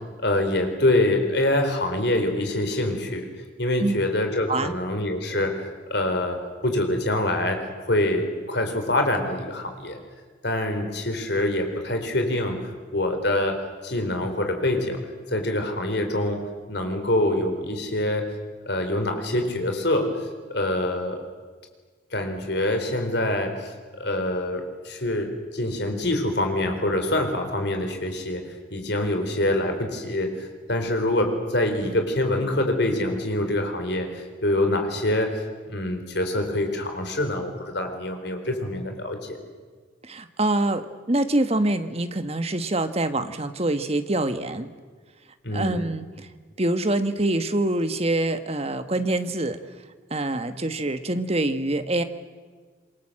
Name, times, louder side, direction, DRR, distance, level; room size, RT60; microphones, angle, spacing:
voice 1, 0.0-3.3 3.6-10.0 10.4-15.0 15.3-18.3 18.7-20.1 20.5-21.2 22.1-28.4 28.7-35.4 35.7-39.4 45.4-45.9, left 1 dB, 55° left, 5 dB, 4.2 m, -25 dB
voice 2, 40.0-44.7 45.5-46.3 46.6-49.6 50.1-52.0, right 2 dB, 30° right, 9 dB, 1.3 m, -25 dB
27.0 x 23.0 x 7.7 m, 1.5 s
head